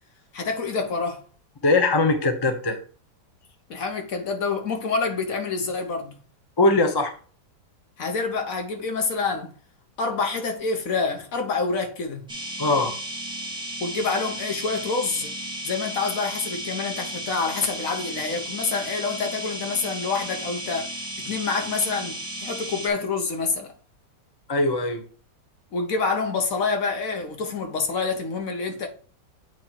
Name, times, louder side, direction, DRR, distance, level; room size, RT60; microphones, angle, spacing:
voice 1, 0.3-1.2 3.7-6.2 8.0-9.5 10.0-12.3 13.8-15.3 15.6-23.7 25.7-28.9, left 4 dB, 55° left, 1.3 m, -27 dB
voice 2, 1.6-2.8 6.6-7.1 12.6-12.9 24.5-25.0, left 2 dB, 25° left, 0.5 m, -21 dB
sound 1, 12.3-22.9, right 1 dB, 5° right, 1.2 m, -34 dB
8.4 x 3.1 x 4.4 m
omnidirectional pair, 1.9 m